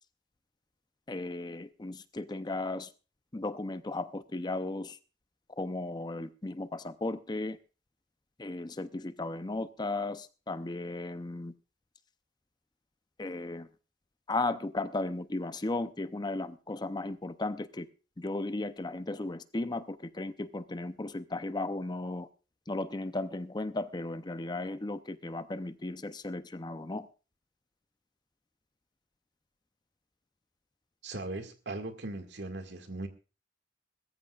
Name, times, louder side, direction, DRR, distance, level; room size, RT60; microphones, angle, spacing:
voice 1, 1.1-2.9 3.3-5.0 5.6-7.6 8.4-11.5 13.2-13.7 14.3-17.9 18.2-22.3 22.7-27.1, left 2 dB, 20° left, 12 dB, 0.6 m, -35 dB
voice 2, 31.0-33.1, right 2 dB, 65° right, 6 dB, 2.0 m, -39 dB
21.5 x 14.0 x 2.4 m, 0.33 s
head